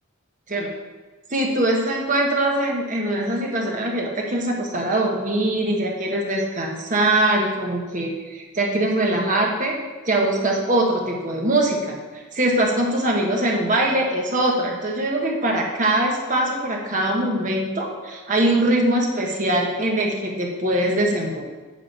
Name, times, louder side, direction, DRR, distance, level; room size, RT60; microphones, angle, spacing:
voice 1, 1.3-9.7 10.1-11.9 12.3-21.4, right 1 dB, 35° right, 0 dB, 1.2 m, -22 dB
9.3 x 3.8 x 5.2 m, 1.3 s
head